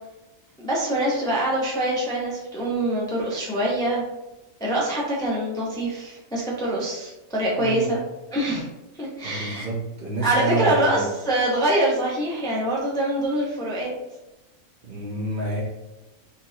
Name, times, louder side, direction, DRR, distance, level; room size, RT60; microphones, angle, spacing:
voice 1, 0.6-4.0 4.6-8.0 8.3-8.7 9.0-9.7 10.2-13.9, right 1 dB, 5° left, -4 dB, 0.5 m, -24 dB
voice 2, 7.6-8.0 9.2-11.1 14.8-15.6, right 2 dB, 50° right, -4 dB, 0.7 m, -28 dB
3.8 x 2.7 x 2.7 m, 1.0 s
omnidirectional pair, 1.4 m